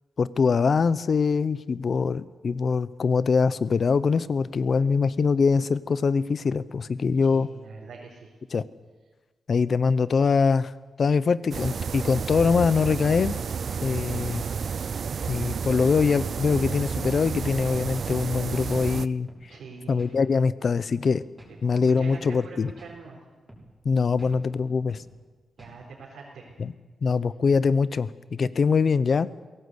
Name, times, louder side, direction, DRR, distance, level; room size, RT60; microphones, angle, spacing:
voice 1, 0.2-7.5 8.5-8.6 9.5-10.7 11.0-13.4 13.8-14.4 15.3-19.3 19.9-21.2 21.6-22.7 23.8-25.0 26.6-26.7 27.0-29.3, left 5 dB, 45° left, 17 dB, 0.7 m, -23 dB
voice 2, 7.2-8.3 13.9-14.6 19.5-20.0 21.5-23.2 25.6-26.5, right 4 dB, 85° right, -3 dB, 4.3 m, -44 dB
sound 1, 11.5-19.1, right 6 dB, 55° right, 0.6 m, -31 dB
sound 2, 15.8-16.0 16.5-16.7 17.2-17.4 17.9-18.1 18.6-18.7 19.3-19.5 20.0-20.2 20.7-20.8 21.4-21.5 22.1-22.3 22.8-23.0 23.5-23.7 24.2-24.4 24.9-25.1 25.6-25.8, right 1 dB, 10° right, 6.1 m, -48 dB
22.5 x 18.0 x 8.2 m, 1.3 s
wide cardioid pair, 140°, 0 cm